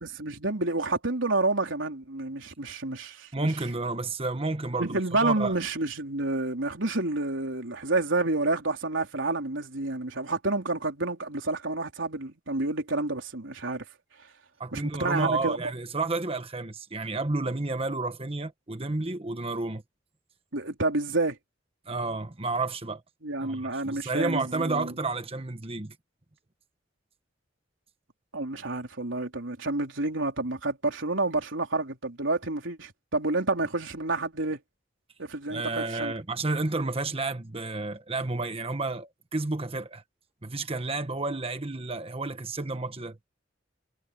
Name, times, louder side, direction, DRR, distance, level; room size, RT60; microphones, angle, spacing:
voice 1, 0.0-3.5 4.8-13.8 14.7-15.6 20.5-21.4 23.2-24.9 28.3-34.6 35.2-36.1, right 2 dB, 90° right, 3.7 m, -29 dB
voice 2, 3.3-5.6 14.6-19.8 21.9-23.0 23.4-25.9 35.5-40.0 40.4-43.2, right 3 dB, 30° right, 1.3 m, -31 dB
head